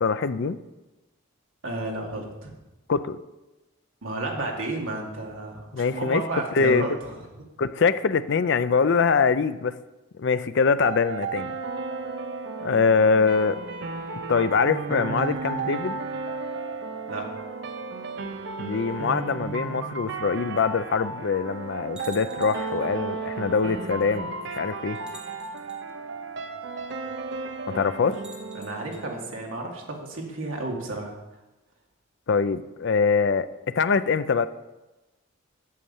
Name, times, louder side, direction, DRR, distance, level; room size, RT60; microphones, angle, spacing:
voice 1, 0.0-0.6 2.9-3.2 5.7-6.2 6.6-6.9 7.6-9.8 10.2-11.5 12.6-13.6 14.3-16.0 18.6-25.0 27.7-28.2 32.3-34.5, left 5 dB, 55° left, 13 dB, 0.4 m, -23 dB
voice 2, 1.6-2.5 4.0-7.2 17.1-17.3 28.5-31.1, right 2 dB, 70° right, -1 dB, 2.1 m, -32 dB
sound 1, 10.8-29.8, right 4 dB, 55° right, 0.7 m, -34 dB
sound 2, 22.0-22.8 24.0-24.1 24.9-25.8 28.1-29.0, right 1 dB, 5° right, 1.1 m, -48 dB
8.4 x 6.5 x 7.2 m, 1.1 s
head